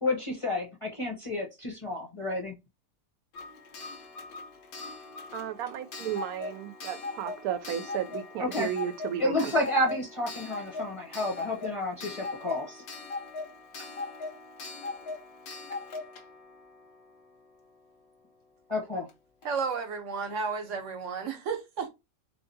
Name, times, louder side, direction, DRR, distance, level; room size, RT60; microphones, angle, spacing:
voice 1, 0.0-2.5 8.4-8.7 9.2-12.8 18.7-19.1, left 1 dB, 25° left, 0.7 m, -30 dB
Clock, 3.3-17.9 19.1-19.2 19.4-19.5, left 3 dB, 75° left, 1.3 m, -40 dB
voice 2, 5.3-9.5, right 10 dB, 90° right, 1.1 m, -34 dB
voice 3, 19.4-21.9, right 5 dB, 60° right, 1.1 m, -32 dB
3.6 x 3.3 x 2.7 m
omnidirectional pair, 1.5 m